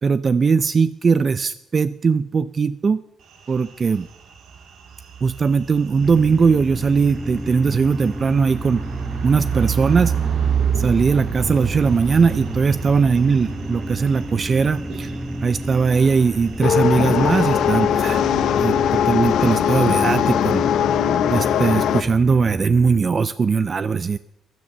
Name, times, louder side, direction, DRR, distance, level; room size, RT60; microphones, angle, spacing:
voice 1, 0.0-3.0 3.5-4.1 5.2-8.8 9.2-10.1 10.8-15.1 15.4-18.2 18.6-20.6 21.3-24.2, right 5 dB, 40° right, 14 dB, 0.5 m, -19 dB
sound 1, 3.3-17.9, right 7 dB, 80° right, 2.5 m, -30 dB
sound 2, 6.0-23.0, equal, ahead, 0.8 m, -32 dB
sound 3, 16.6-22.0, left 9 dB, 80° left, 0.8 m, -20 dB
15.5 x 9.9 x 6.7 m, 0.86 s
cardioid pair, 90°, 0 cm